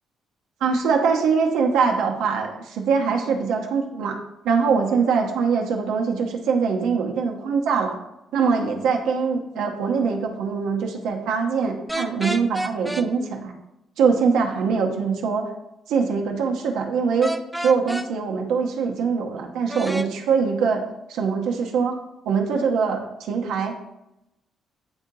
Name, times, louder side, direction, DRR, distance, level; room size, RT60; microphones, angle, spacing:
voice 1, 0.6-4.2 4.4-8.0 8.3-13.5 14.0-15.5 15.9-17.4 17.6-20.8 21.1-21.9 22.2-23.8, right 5 dB, 85° right, 1 dB, 0.9 m, -23 dB
sound 1, 11.9-13.1 17.2-18.1 19.7-20.1, right 1 dB, 5° right, 0.4 m, -29 dB
9.0 x 3.9 x 2.7 m, 0.88 s
cardioid pair, 90°, 0 cm